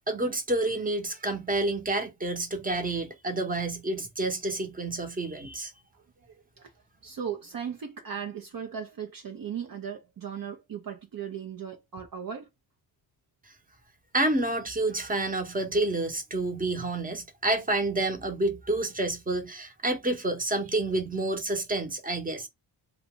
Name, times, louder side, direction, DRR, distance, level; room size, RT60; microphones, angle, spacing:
voice 1, 0.1-5.7 14.1-22.5, right 2 dB, 15° right, 1.1 m, -29 dB
voice 2, 5.9-6.7 7.0-12.5, right 7 dB, 45° right, 0.8 m, -37 dB
2.5 x 2.4 x 3.8 m
supercardioid pair, 50°, 50 cm